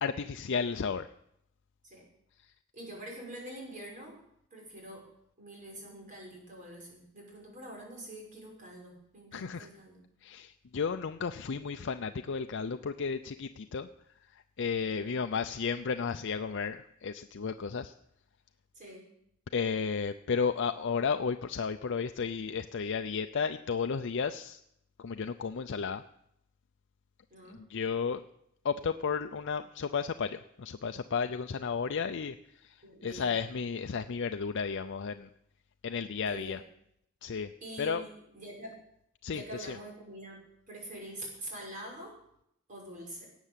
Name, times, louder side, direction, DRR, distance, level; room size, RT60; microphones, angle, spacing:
voice 1, 0.0-1.1 9.3-9.7 10.2-13.9 14.3-17.9 19.5-24.6 25.0-26.0 27.5-28.2 28.6-35.3 35.8-36.6 37.2-37.5 37.8-38.0 39.2-39.8, left 5 dB, 60° left, 8 dB, 0.5 m, -33 dB
voice 2, 2.7-4.2 4.5-5.1 5.4-10.0 14.9-15.2 18.7-19.0 27.3-27.6 32.8-33.5 36.2-36.6 37.6-38.7 39.3-42.1 42.7-43.3, right 1 dB, 40° right, -1 dB, 5.9 m, -45 dB
18.5 x 8.2 x 7.5 m, 0.75 s
head